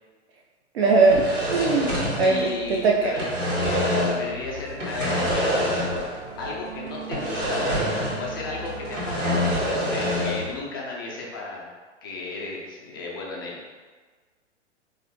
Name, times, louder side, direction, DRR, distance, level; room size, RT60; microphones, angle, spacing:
voice 1, 0.7-2.4 2.7-3.1, right 3 dB, 55° right, -1 dB, 0.5 m, -20 dB
sound 1, 1.0-2.8 3.0-4.3 4.8-6.2 6.4-6.5 7.1-8.4 8.7-10.5, left 1 dB, 75° right, 1.4 m, -26 dB
voice 2, 2.2-3.2 3.6-6.1 6.4-9.5 9.9-11.7 12.0-13.6, left 3 dB, 20° left, -3 dB, 0.3 m, -35 dB
sound 2, 4.2-10.0, right 2 dB, 30° right, 0.9 m, -40 dB
3.9 x 2.6 x 2.8 m, 1.4 s
figure-of-eight pair, 115°, 37 cm